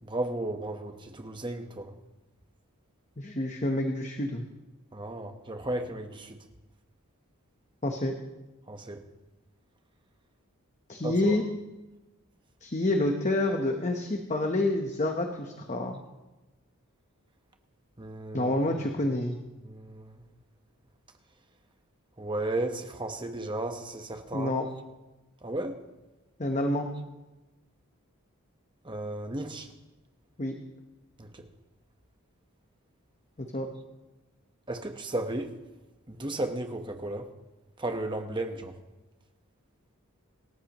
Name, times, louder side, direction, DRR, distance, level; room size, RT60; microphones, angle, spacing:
voice 1, 0.0-1.9 4.9-6.4 8.7-9.0 11.0-11.4 18.0-18.5 19.6-20.2 22.2-24.6 25.4-25.8 28.8-29.7 31.2-31.5 34.7-35.5 36.1-37.3 37.8-38.7, right 2 dB, 20° right, 5 dB, 1.2 m, -34 dB
voice 2, 3.2-4.5 7.8-8.1 10.9-11.4 12.6-16.0 18.3-19.4 24.3-24.7 26.4-26.9 30.4-30.6 33.4-33.7, left 1 dB, 30° left, 3 dB, 1.0 m, -28 dB
27.0 x 14.0 x 3.1 m, 1.1 s
head